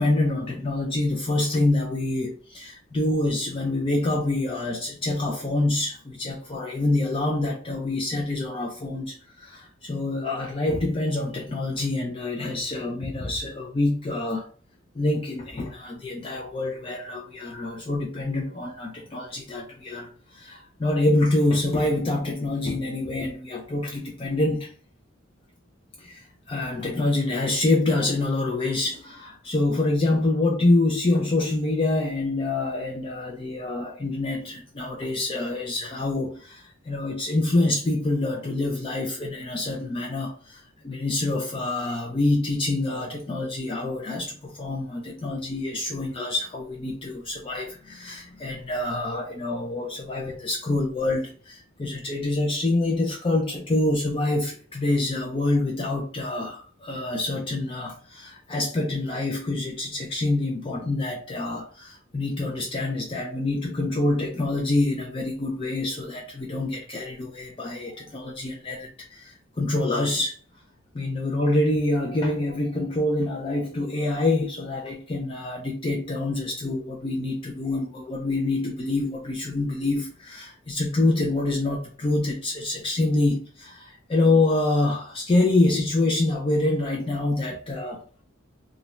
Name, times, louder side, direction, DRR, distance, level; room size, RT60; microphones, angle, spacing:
voice 1, 0.0-14.5 15.0-24.7 26.0-70.3 70.9-88.0, left 2 dB, 25° left, 0.3 m, -26 dB
2.4 x 2.1 x 2.9 m
head